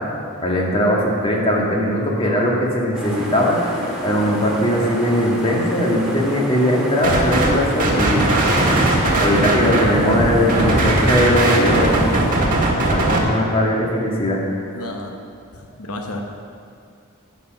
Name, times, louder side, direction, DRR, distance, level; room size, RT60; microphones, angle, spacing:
voice 1, 0.0-12.3 12.8-14.7, equal, 25° left, -2 dB, 1.8 m, -20 dB
sound 1, 2.9-12.3, equal, 5° right, 2.2 m, -29 dB
sound 2, 7.0-7.5 7.8-13.2, right 2 dB, 40° right, 1.6 m, -18 dB
voice 2, 14.7-15.2 15.5-16.2, left 2 dB, 75° left, 3 dB, 1.0 m, -32 dB
11.5 x 8.4 x 5.3 m, 2.4 s
head